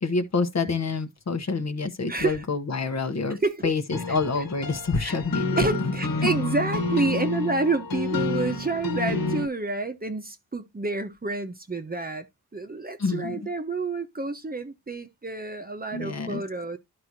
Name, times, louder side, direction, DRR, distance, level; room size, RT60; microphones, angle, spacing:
voice 1, 0.0-3.4 3.6-5.9 13.0-13.4 15.9-16.4, left 4 dB, 45° left, 1.0 m, -27 dB
voice 2, 2.1-2.4 3.3-3.7 4.1-4.2 5.0-5.1 5.6-12.3 12.5-16.8, right 3 dB, 25° right, 0.9 m, -29 dB
sound 1, 3.9-9.5, left 3 dB, 65° left, 1.5 m, -29 dB
12.0 x 4.7 x 2.7 m
wide cardioid pair, 110°, 37 cm